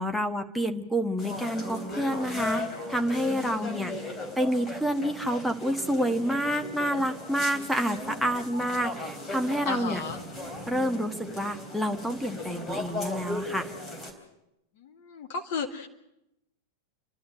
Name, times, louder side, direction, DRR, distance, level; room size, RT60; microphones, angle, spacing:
voice 1, 0.0-3.9 4.4-10.0 10.7-13.7, equal, ahead, 4 dB, 1.4 m, -28 dB
sound 1, 1.2-14.1, left 1 dB, 20° left, 3.9 m, -37 dB
voice 2, 3.2-4.1 9.6-10.2 14.8-15.9, left 5 dB, 50° left, 5 dB, 2.1 m, -35 dB
29.0 x 12.5 x 9.0 m, 0.87 s
figure-of-eight pair, 90°, 0 cm